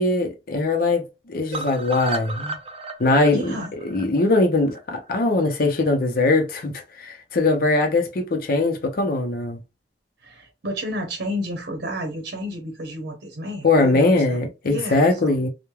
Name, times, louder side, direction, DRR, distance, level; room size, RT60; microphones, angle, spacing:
voice 1, 0.0-2.6 3.0-9.6 13.6-15.5, left 2 dB, 55° left, 0.6 m, -21 dB
sound 1, 1.5-5.5 5.9-6.0 6.3-6.4 6.6-6.7, right 2 dB, 35° right, 0.4 m, -34 dB
voice 2, 3.3-3.7 10.2-15.4, equal, 65° right, 0.8 m, -31 dB
3.1 x 2.1 x 2.2 m
head